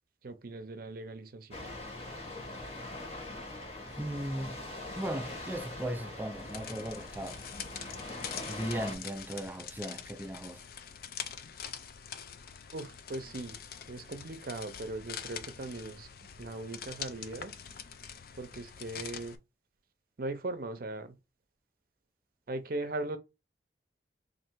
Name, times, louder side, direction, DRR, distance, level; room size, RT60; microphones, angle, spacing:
voice 1, 0.2-1.7 12.7-13.6 13.9-17.6 18.3-19.4 20.2-21.2 22.5-23.2, right 2 dB, 55° right, 0.6 m, -39 dB
sound 1, 1.5-8.9, left 2 dB, 35° left, 1.2 m, -42 dB
voice 2, 4.0-4.6 5.0-7.4 8.5-10.6, right 1 dB, 10° right, 0.4 m, -37 dB
sound 2, 6.4-19.3, left 8 dB, 55° left, 0.4 m, -44 dB
3.2 x 2.6 x 4.5 m
head